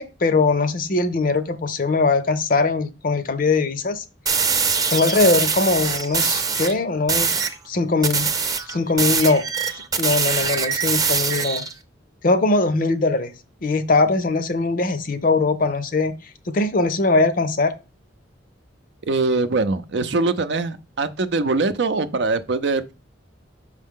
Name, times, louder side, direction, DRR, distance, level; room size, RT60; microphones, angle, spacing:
voice 1, 0.0-4.0 4.9-7.4 7.7-8.3 8.7-9.4 10.0-11.6 12.2-13.3 13.6-16.1 16.5-17.7, left 3 dB, 50° left, 0.6 m, -21 dB
sound 1, 4.3-6.7 7.1-7.6 8.0-11.7, right 5 dB, 20° right, 0.6 m, -23 dB
voice 2, 19.1-22.9, right 3 dB, 65° right, 0.5 m, -22 dB
6.3 x 4.9 x 3.7 m
head